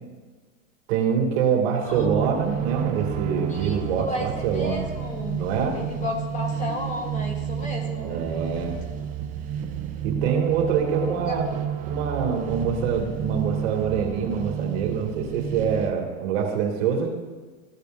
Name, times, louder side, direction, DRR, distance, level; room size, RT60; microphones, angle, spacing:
voice 1, 0.9-4.8 5.4-5.8 8.0-8.8 10.0-11.5 11.9-17.1, right 6 dB, 50° right, 1 dB, 2.0 m, -25 dB
voice 2, 1.8-2.1 3.5-5.4 5.7-8.1 11.0-11.4, left 2 dB, 20° left, 2 dB, 1.1 m, -33 dB
sound 1, 1.9-15.9, right 9 dB, 20° right, 0.5 m, -30 dB
14.0 x 6.7 x 2.5 m, 1.3 s
hypercardioid pair, 130°, 40 cm